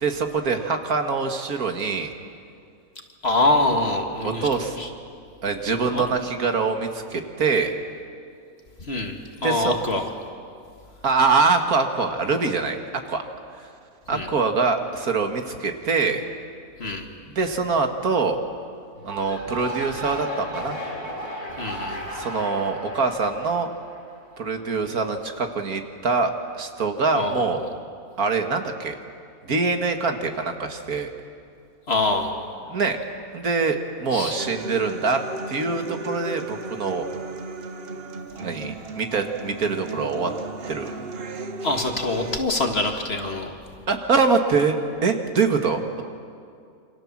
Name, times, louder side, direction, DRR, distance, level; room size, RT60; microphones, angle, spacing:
voice 1, 0.0-2.1 4.2-4.8 5.4-7.7 9.4-9.7 11.0-13.2 13.6-13.7 14.1-16.2 17.3-18.4 19.0-20.8 22.1-23.7 24.4-27.7 28.2-29.0 29.5-31.1 32.7-33.0 33.3-37.1 38.4-40.3 40.7-40.9 43.9-44.8 45.0-46.0, right 4 dB, 75° right, 5 dB, 2.2 m, -24 dB
voice 2, 3.2-4.9 5.8-6.1 8.8-10.1 14.1-14.3 16.8-17.1 21.6-22.1 27.1-27.7 31.9-32.5 34.1-34.4 41.6-43.5, left 2 dB, 45° left, 3 dB, 2.1 m, -25 dB
sound 1, 18.9-24.3, equal, 85° left, 6.7 m, -34 dB
Human voice / Acoustic guitar, 34.4-42.4, right 3 dB, 45° right, 1.3 m, -35 dB
28.0 x 26.0 x 7.4 m, 2.4 s
omnidirectional pair, 1.6 m